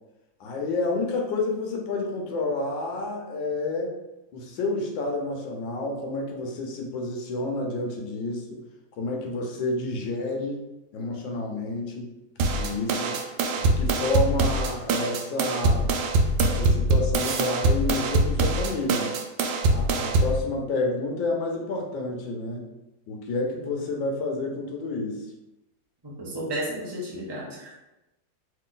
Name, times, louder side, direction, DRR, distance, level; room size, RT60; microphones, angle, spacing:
voice 1, 0.4-3.9 4.3-8.4 9.0-10.6 10.9-12.1 12.6-13.1 13.6-15.9 16.4-19.1 19.7-22.7 23.1-25.2, left 2 dB, 80° left, 1 dB, 1.5 m, -29 dB
sound 1, 12.4-20.4, right 2 dB, 80° right, 1.3 m, -23 dB
voice 2, 26.0-27.8, right 1 dB, 30° right, -5 dB, 0.4 m, -33 dB
3.3 x 3.0 x 3.7 m, 0.95 s
omnidirectional pair, 2.1 m